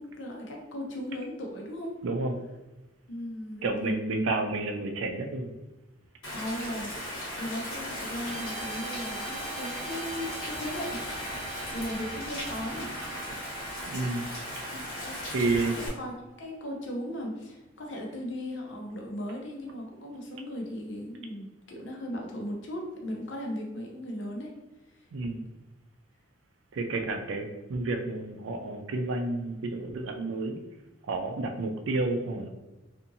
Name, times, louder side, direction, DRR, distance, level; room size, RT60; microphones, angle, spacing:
voice 1, 0.0-1.9 3.1-4.2 6.3-11.0 11.7-12.9 14.7-24.5 24.9-25.1, left 1 dB, 65° left, 0 dB, 0.6 m, -37 dB
voice 2, 2.0-2.3 3.6-5.5 13.9-14.3 15.3-15.7 25.1-25.4 26.7-30.6 31.0-32.5, right 2 dB, 85° right, 5 dB, 0.4 m, -30 dB
Rain, 6.2-15.9, left 1 dB, 90° left, 0.9 m, -37 dB
Guitar, 8.2-16.7, right 7 dB, ahead, 1.4 m, -46 dB
2.7 x 2.5 x 2.6 m, 1.0 s
head